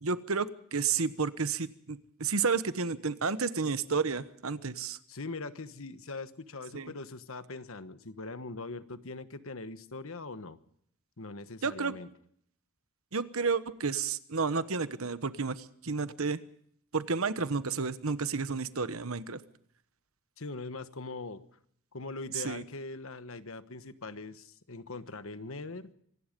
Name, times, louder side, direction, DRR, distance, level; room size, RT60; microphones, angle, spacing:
voice 1, 0.0-5.0 6.7-6.9 11.6-11.9 13.1-16.4 16.9-19.4 22.3-22.6, right 5 dB, 70° right, 13 dB, 1.2 m, -31 dB
voice 2, 5.1-10.6 11.2-12.1 20.4-21.4 21.9-25.9, left 3 dB, 65° left, 11 dB, 1.3 m, -41 dB
26.0 x 19.0 x 5.3 m, 0.66 s
head